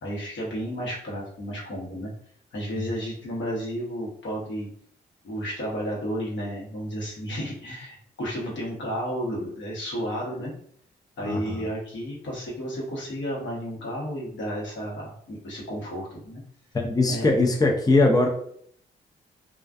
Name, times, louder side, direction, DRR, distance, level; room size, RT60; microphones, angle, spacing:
voice 1, 0.0-2.1 2.5-4.7 5.2-10.5 11.2-16.4 17.1-17.4, equal, 65° left, -4 dB, 1.0 m, -32 dB
voice 2, 11.2-11.7 16.7-18.3, left 2 dB, 20° left, 2 dB, 0.5 m, -21 dB
2.4 x 2.4 x 2.3 m, 0.63 s
supercardioid pair, 40°, 21 cm